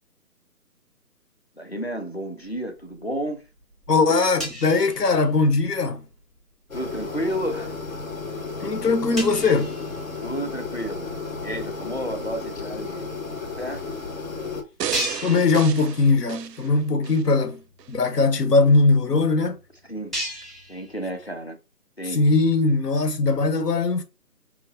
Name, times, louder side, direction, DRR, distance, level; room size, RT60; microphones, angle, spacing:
voice 1, 1.6-3.4 6.7-7.8 10.2-11.2 11.4-13.1 13.6-13.9 19.9-20.2 20.7-21.6 22.0-22.3, right 1 dB, 45° left, 0.6 m, -31 dB
sound 1, 2.8-3.3 3.6-5.8 6.1-6.4 6.9-7.2 7.8-7.9 8.2-8.3 8.5-8.6 9.2-10.8 11.4-11.5 12.6-12.7 12.9-13.0 13.7-13.8 14.2-14.3 14.9-16.3 16.7-16.8 17.3-17.4 17.6-21.4, equal, ahead, 0.6 m, -36 dB
voice 2, 3.9-6.0 8.6-9.7 15.2-17.6 17.9-19.6 22.1-24.0, left 3 dB, 80° left, 1.1 m, -20 dB
sound 2, 6.7-14.6, left 4 dB, 60° left, 1.0 m, -33 dB
sound 3, 14.8-17.3 17.8-17.9, right 9 dB, 85° right, 0.5 m, -33 dB
4.6 x 2.9 x 2.7 m
figure-of-eight pair, 180°, 47 cm